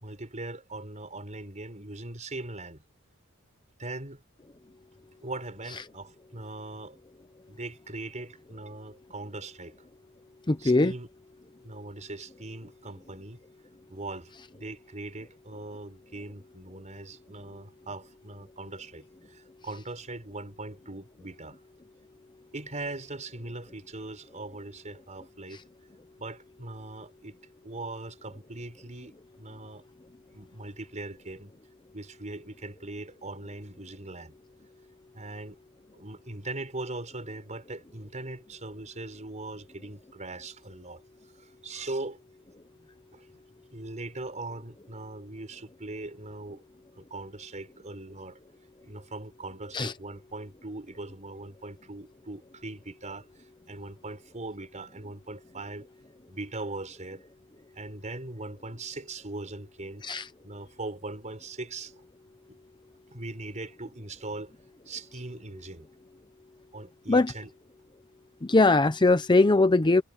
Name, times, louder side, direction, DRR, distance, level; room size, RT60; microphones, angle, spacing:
voice 1, 0.0-2.8 3.8-4.2 5.2-7.0 7.5-9.7 10.6-11.1 11.6-13.4 13.9-21.6 22.5-25.6 26.2-27.3 27.6-29.8 30.3-31.5 31.9-34.3 35.1-35.6 35.9-41.0 41.6-42.2 43.1-43.4 43.7-46.6 47.0-48.4 48.8-53.3 53.7-55.9 56.3-57.2 57.7-60.0 60.4-61.9 63.1-64.5 64.8-65.9 66.7-67.5, right 2 dB, 35° right, 5.1 m, -40 dB
voice 2, 10.5-10.9 49.7-49.9 60.1-60.2 67.1-67.3 68.4-70.0, left 2 dB, 20° left, 0.7 m, -21 dB
head